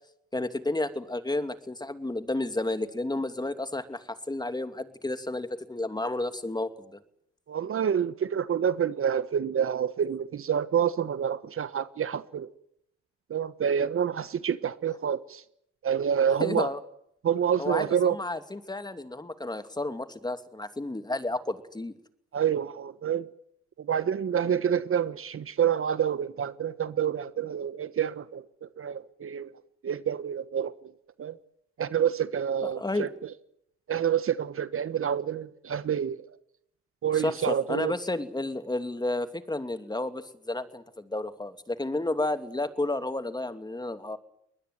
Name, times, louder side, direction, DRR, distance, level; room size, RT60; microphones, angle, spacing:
voice 1, 0.3-7.0 16.4-16.8 17.6-21.9 32.6-33.1 37.1-44.2, left 2 dB, 15° left, 2.7 m, -31 dB
voice 2, 7.5-12.5 13.3-15.4 15.8-16.7 17.2-18.2 22.3-23.3 23.8-29.5 29.8-30.9 31.2-31.4 31.8-33.1 33.9-36.3 37.0-37.9, right 8 dB, 45° right, 1.3 m, -28 dB
22.5 x 20.5 x 9.3 m
supercardioid pair, 70°, 30 cm